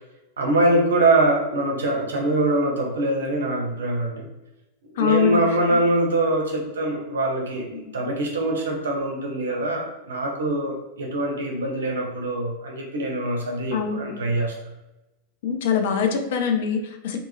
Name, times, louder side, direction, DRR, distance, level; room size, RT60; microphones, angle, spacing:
voice 1, 0.4-4.3 4.9-14.5, right 2 dB, 70° right, 0 dB, 0.5 m, -23 dB
voice 2, 5.0-5.4 13.7-14.1 15.4-17.2, left 7 dB, 55° left, 5 dB, 0.4 m, -23 dB
2.6 x 2.4 x 2.6 m, 0.96 s
figure-of-eight pair, 90°, 0 cm